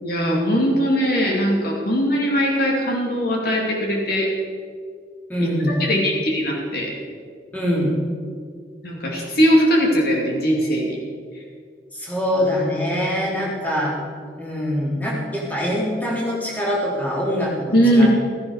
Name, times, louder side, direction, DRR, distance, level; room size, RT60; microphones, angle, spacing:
voice 1, 0.0-4.3 5.8-6.9 8.8-11.0 17.7-18.1, equal, 60° left, -1 dB, 2.9 m, -20 dB
voice 2, 5.3-5.8 7.5-7.9 11.9-13.9 14.4-18.1, equal, 10° left, -5 dB, 3.7 m, -23 dB
16.0 x 15.0 x 5.0 m, 2.1 s
head